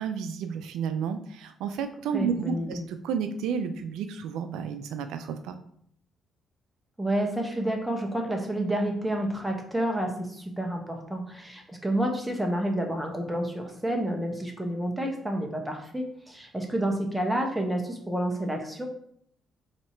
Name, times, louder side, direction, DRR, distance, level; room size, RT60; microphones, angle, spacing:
voice 1, 0.0-5.6, right 7 dB, 90° right, 8 dB, 0.4 m, -31 dB
voice 2, 2.1-2.8 7.0-18.9, right 1 dB, 10° right, 2 dB, 1.0 m, -29 dB
4.3 x 2.8 x 4.3 m, 0.67 s
cardioid pair, 90°, 0 cm